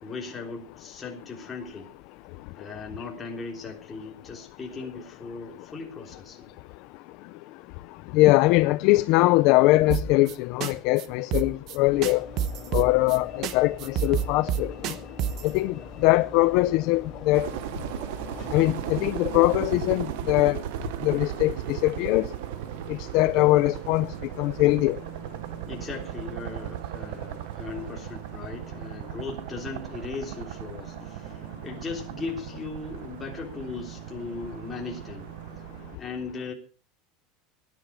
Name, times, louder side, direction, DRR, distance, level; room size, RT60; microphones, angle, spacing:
voice 1, 0.0-1.9 2.6-6.5 25.7-35.3 36.0-36.5, left 4 dB, 15° left, 3.4 m, -38 dB
voice 2, 8.1-12.3 12.7-14.7 15.4-15.8 16.0-17.5 18.5-20.6 21.0-22.3 22.9-24.1 24.4-25.0, left 19 dB, 50° left, 0.6 m, -22 dB
sound 1, 9.9-10.3 10.6-10.7 11.0-11.1 11.3-11.8 12.0-13.2 13.4-13.5 13.8-15.5, right 9 dB, 40° right, 1.1 m, -28 dB
Train / Engine / Alarm, 11.7-20.0, left 5 dB, 30° left, 3.8 m, -43 dB
sound 2, 17.3-36.0, right 13 dB, 70° right, 1.0 m, -37 dB
18.0 x 10.5 x 5.0 m
supercardioid pair, 170°, 0 cm